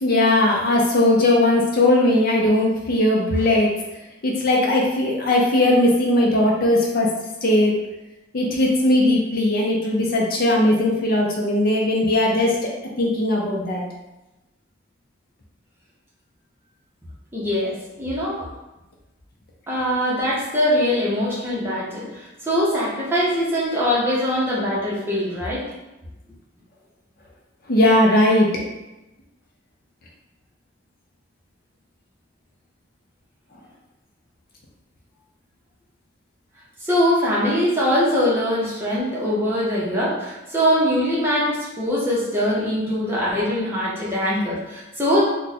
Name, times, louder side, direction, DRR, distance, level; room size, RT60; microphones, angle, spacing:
voice 1, 0.0-3.7 4.2-7.1 7.4-7.7 8.3-12.7 13.0-13.8 27.7-28.5, left 1 dB, 50° left, -2 dB, 0.5 m, -18 dB
voice 2, 17.3-18.5 19.7-25.6 36.8-45.2, equal, 10° right, -7 dB, 0.8 m, -22 dB
2.5 x 2.2 x 4.0 m, 0.99 s
head